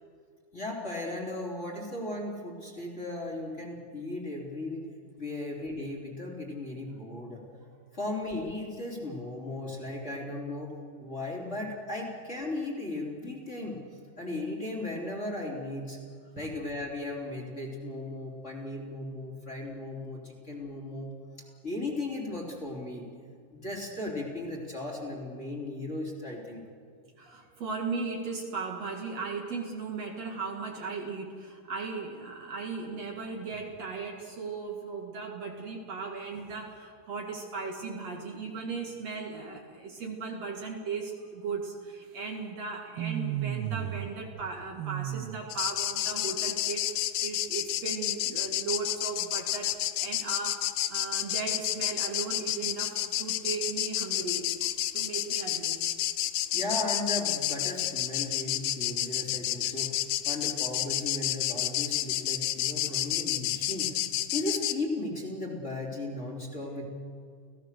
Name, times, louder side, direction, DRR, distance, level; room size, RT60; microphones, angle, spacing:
voice 1, 0.5-4.9 5.2-7.4 7.9-10.7 11.0-13.8 14.2-16.0 16.4-21.1 21.6-23.0 23.5-26.6 56.5-59.9 60.2-63.9 64.3-66.8, left 2 dB, 20° left, -2 dB, 3.7 m, -36 dB
voice 2, 27.2-50.6 50.9-54.5 54.9-55.9 62.9-63.0, right 4 dB, 55° right, 1 dB, 3.0 m, -37 dB
sound 1, 43.0-44.1 44.4-45.4, right 12 dB, 85° right, 1.2 m, -33 dB
sound 2, 45.5-64.7, left 14 dB, 85° left, 2.4 m, -30 dB
30.0 x 17.0 x 6.8 m, 2.2 s
omnidirectional pair, 3.7 m